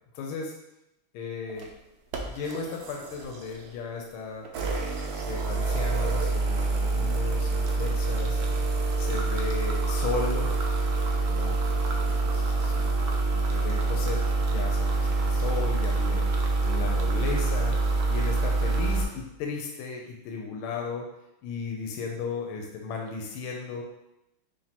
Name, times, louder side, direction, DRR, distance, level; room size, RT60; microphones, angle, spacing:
voice 1, 0.1-0.5 1.1-1.7 2.3-4.5 5.3-8.4 9.0-10.6 11.3-11.6 11.9-16.2 16.6-17.8 18.1-21.1 21.4-23.8, left 4 dB, 85° left, 1 dB, 1.4 m, -35 dB
sound 1, 1.5-1.6 2.1-3.7 4.5-19.1, right 3 dB, 85° right, 0.8 m, -26 dB
5.1 x 2.6 x 2.8 m, 0.87 s
omnidirectional pair, 2.3 m